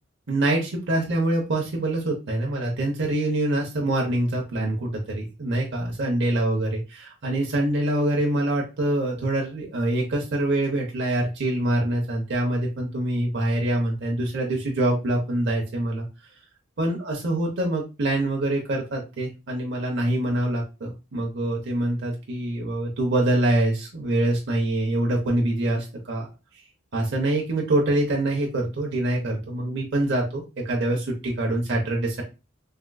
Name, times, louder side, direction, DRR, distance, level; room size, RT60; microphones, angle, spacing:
voice 1, 0.3-16.1 16.8-26.3 26.9-32.2, right 1 dB, 60° right, -1 dB, 0.7 m, -25 dB
3.5 x 2.4 x 2.2 m, 0.28 s
head